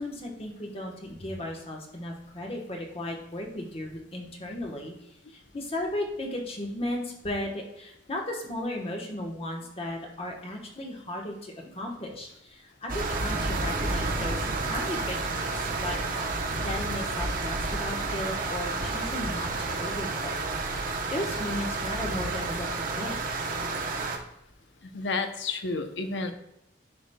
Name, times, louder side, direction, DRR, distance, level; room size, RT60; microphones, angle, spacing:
voice 1, 0.0-16.0 16.3-20.4 21.1-22.7 23.0-23.2, left 1 dB, 35° left, 0 dB, 1.2 m, -35 dB
sound 1, 12.9-24.2, right 3 dB, 50° right, 0.9 m, -30 dB
voice 2, 24.9-26.3, left 3 dB, 75° left, 7 dB, 0.7 m, -30 dB
10.5 x 5.1 x 2.2 m, 0.85 s
head